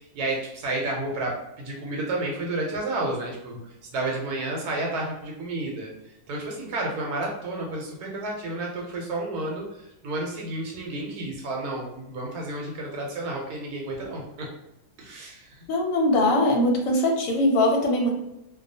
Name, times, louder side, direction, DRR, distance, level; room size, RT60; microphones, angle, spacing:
voice 1, 0.0-3.6 3.9-5.9 6.3-9.7 10.0-14.5 15.0-15.5, right 2 dB, 85° right, -1 dB, 1.1 m, -31 dB
voice 2, 15.7-18.1, left 1 dB, 70° left, 1 dB, 0.9 m, -21 dB
2.3 x 2.3 x 2.6 m, 0.86 s
omnidirectional pair, 1.6 m